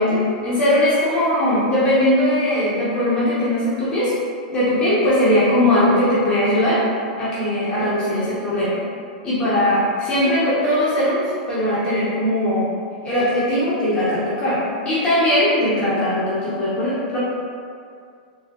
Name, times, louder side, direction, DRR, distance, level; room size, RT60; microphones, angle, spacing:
voice 1, 0.0-4.1 4.5-6.8 7.2-8.8 9.2-12.7 13.0-17.2, left 1 dB, 20° left, -11 dB, 0.9 m, -19 dB
3.4 x 2.4 x 2.4 m, 2.3 s
hypercardioid pair, 125°, 5 cm